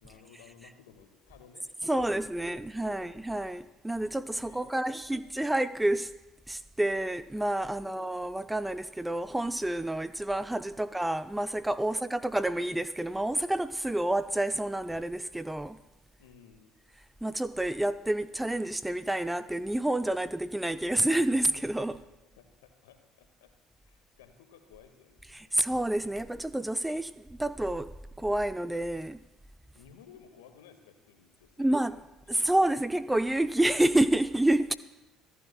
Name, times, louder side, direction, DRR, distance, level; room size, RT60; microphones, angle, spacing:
voice 1, 0.0-3.2 4.4-5.5 10.8-10.9 11.8-12.2 16.2-16.7 21.9-22.1 22.3-23.5 23.8-25.7 29.7-32.0 32.3-32.4, left 8 dB, 70° left, 1.6 m, -57 dB
voice 2, 1.8-6.1 6.5-15.8 17.2-22.0 25.3-27.9 28.2-29.2 31.6-32.0 32.3-34.8, right 1 dB, 10° right, 0.5 m, -29 dB
26.0 x 15.5 x 2.2 m
figure-of-eight pair, 55°, 0 cm